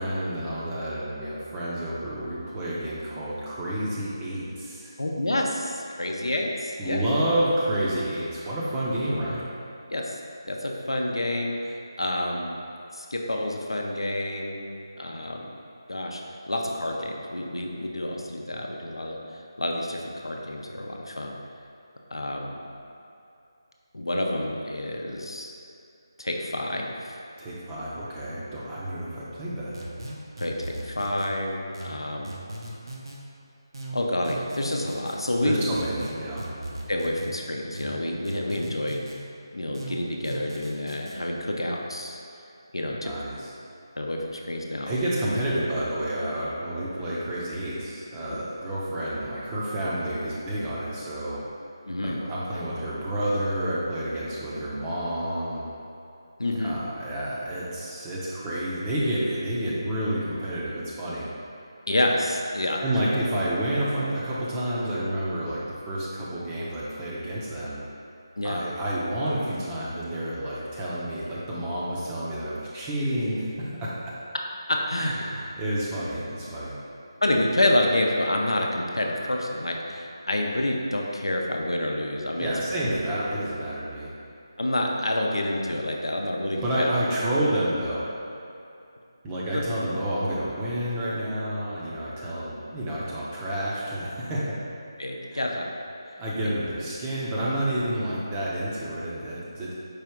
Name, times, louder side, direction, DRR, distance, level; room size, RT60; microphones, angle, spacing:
voice 1, 0.0-4.9 6.8-9.4 27.4-29.8 35.4-36.4 43.0-43.5 44.9-51.4 52.0-55.6 56.6-61.3 62.8-65.6 65.9-67.8 68.4-74.1 75.0-76.8 82.4-84.1 86.6-88.1 89.2-94.6 95.3-95.5 96.2-99.7, right 1 dB, 15° right, -7 dB, 0.6 m, -29 dB
voice 2, 5.0-7.0 9.9-12.6 12.9-14.6 15.0-15.4 15.9-16.2 16.5-21.4 22.1-22.6 23.9-25.5 26.2-27.2 30.4-32.4 33.9-35.8 36.9-39.0 39.5-42.2 42.7-43.1 44.0-45.0 51.9-52.2 56.4-56.8 61.9-62.8 68.4-68.6 74.7-75.1 77.2-82.5 84.6-86.9 89.5-89.6 95.0-95.7, left 1 dB, 90° left, 0 dB, 0.6 m, -28 dB
sound 1, 29.7-31.3 31.7-33.2 33.7-35.2 35.7-37.3 37.7-39.2 39.7-41.2, right 1 dB, 65° right, 0.8 m, -38 dB
4.8 x 2.4 x 4.4 m, 2.6 s
figure-of-eight pair, 160°, 2 cm